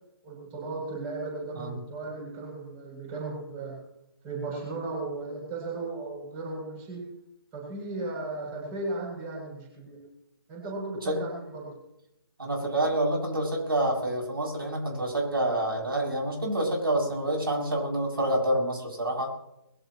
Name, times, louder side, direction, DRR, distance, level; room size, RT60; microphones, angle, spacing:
voice 1, 0.2-3.8 4.2-7.0 7.5-10.0 10.5-11.7, right 2 dB, 20° right, -2 dB, 7.5 m, -36 dB
voice 2, 12.4-19.3, right 1 dB, 65° right, -1 dB, 7.4 m, -27 dB
22.5 x 16.5 x 3.1 m, 0.83 s
figure-of-eight pair, 145°, 13 cm